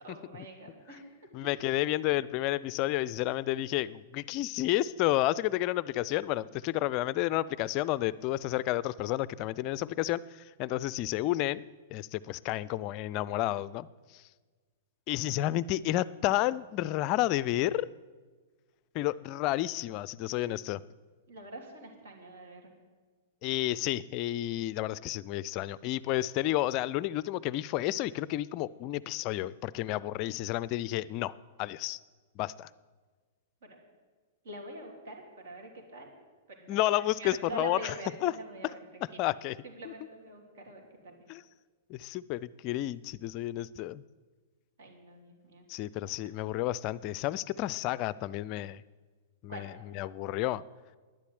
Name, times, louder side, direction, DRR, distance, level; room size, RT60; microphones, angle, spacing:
voice 1, 0.0-1.0 15.1-15.5 21.3-22.7 33.6-33.8 34.4-36.1 36.5-39.3 39.6-41.2 44.8-45.7 46.0-46.1 49.5-49.7, right 2 dB, 60° right, 1 dB, 3.5 m, -45 dB
voice 2, 1.3-11.6 11.9-13.9 14.1-14.2 15.1-17.9 18.9-20.8 23.4-32.0 32.4-32.7 36.7-37.9 38.2-38.3 39.2-39.6 39.9-40.0 41.3-41.4 41.9-44.0 45.7-48.8 49.4-49.7 49.9-50.6, left 15 dB, 40° left, 20 dB, 0.4 m, -31 dB
11.5 x 10.0 x 8.0 m, 1.4 s
figure-of-eight pair, 105°, 0 cm